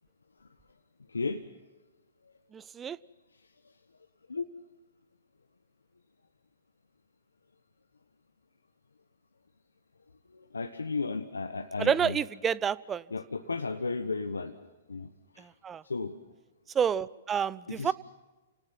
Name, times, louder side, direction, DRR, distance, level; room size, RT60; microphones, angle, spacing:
voice 1, 1.1-1.4 4.3-4.4 10.3-12.2 13.1-14.6 14.9-15.1 15.3-15.5 15.8-16.1 17.7-17.9, left 4 dB, 85° left, 6 dB, 1.2 m, -34 dB
voice 2, 2.5-3.0 11.8-13.0 15.4-15.8 16.7-17.9, right 7 dB, 20° right, 20 dB, 0.6 m, -29 dB
29.5 x 19.0 x 5.9 m, 1.2 s
hypercardioid pair, 120°, 0 cm